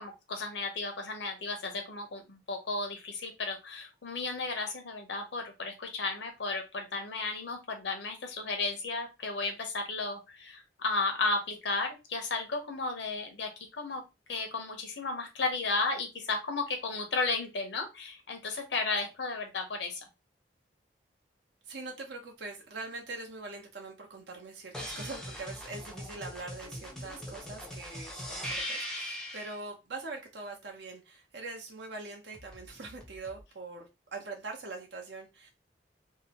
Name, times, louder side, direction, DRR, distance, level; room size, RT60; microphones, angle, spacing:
voice 1, 0.0-13.5 13.8-14.0 14.3-20.0, left 3 dB, 80° left, 4 dB, 0.7 m, -34 dB
voice 2, 21.7-35.5, right 3 dB, 75° right, 1 dB, 0.7 m, -43 dB
sound 1, 24.7-29.6 32.3-33.4, equal, 5° left, 0.4 m, -40 dB
2.7 x 2.0 x 2.8 m, 0.25 s
head